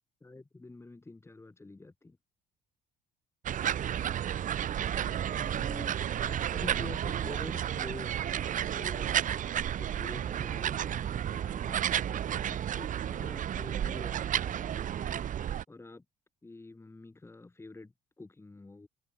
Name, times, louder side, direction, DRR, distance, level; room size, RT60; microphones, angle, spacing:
voice 1, 0.2-2.2 5.3-9.1 9.8-15.1 15.7-16.0 16.4-18.9, left 2 dB, 15° left, 4.9 m, -47 dB
sound 1, 3.4-15.6, right 10 dB, 50° right, 1.3 m, -32 dB
open air
cardioid pair, 110°, 17 cm